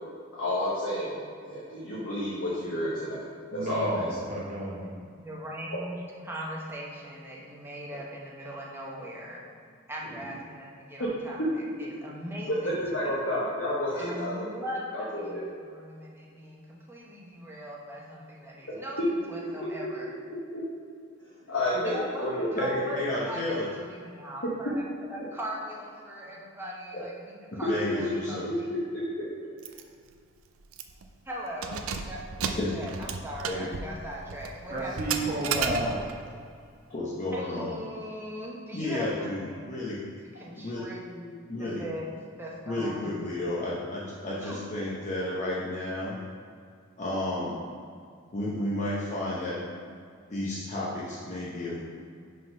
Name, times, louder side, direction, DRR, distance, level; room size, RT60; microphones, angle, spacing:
voice 1, 0.3-3.2 3.5-4.4 11.0-11.1 11.6-11.7 12.6-14.7 14.9-15.4 20.5-20.6 21.5-22.7 26.9-27.0 28.5-29.0, left 1 dB, 70° left, -8 dB, 1.1 m, -31 dB
voice 2, 3.5-4.8 34.7-36.0, right 1 dB, 40° right, -4 dB, 1.4 m, -31 dB
voice 3, 4.8-6.0 6.2-9.5 9.9-13.2 14.0-20.1 21.7-24.8 25.1-28.7 31.2-35.0 37.3-39.8 40.3-42.1 42.4-43.1 44.4-44.7, equal, 10° right, -4 dB, 0.9 m, -40 dB
voice 4, 22.5-23.7 27.5-28.5 32.6-32.7 33.5-33.7 36.9-37.7 38.7-40.0 40.6-40.9 41.5-41.8 42.7-46.2 47.0-47.6 48.3-49.6 50.3-51.8, left 1 dB, 35° left, -6 dB, 0.8 m, -32 dB
Keys jangling, 29.6-29.8 30.2-30.3 30.7-31.1 31.5-36.2, right 6 dB, 80° right, 0.5 m, -34 dB
5.2 x 3.8 x 5.5 m, 2.2 s
head